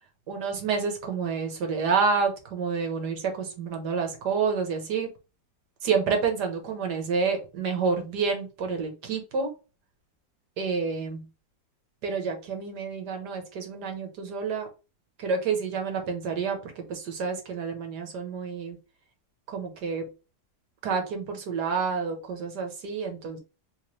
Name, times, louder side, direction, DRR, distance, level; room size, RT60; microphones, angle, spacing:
voice 1, 0.3-5.1 5.8-9.5 10.6-11.2 12.0-14.7 15.2-18.8 19.5-20.0 20.8-23.4, right 5 dB, 75° right, 4 dB, 1.7 m, -29 dB
3.3 x 3.2 x 3.0 m, 0.30 s
omnidirectional pair, 1.8 m